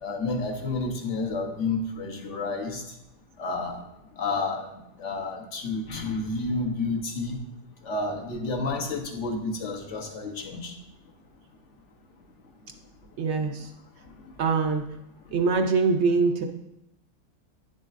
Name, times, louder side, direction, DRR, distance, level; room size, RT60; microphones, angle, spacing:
voice 1, 0.0-2.8 3.4-3.8 4.2-4.6 5.0-7.4 7.8-10.7, left 3 dB, 55° left, 2 dB, 1.3 m, -30 dB
voice 2, 13.2-13.7 14.4-14.8 15.3-16.4, right 4 dB, 65° right, 5 dB, 0.7 m, -23 dB
10.0 x 6.4 x 2.5 m, 0.88 s
omnidirectional pair, 1.5 m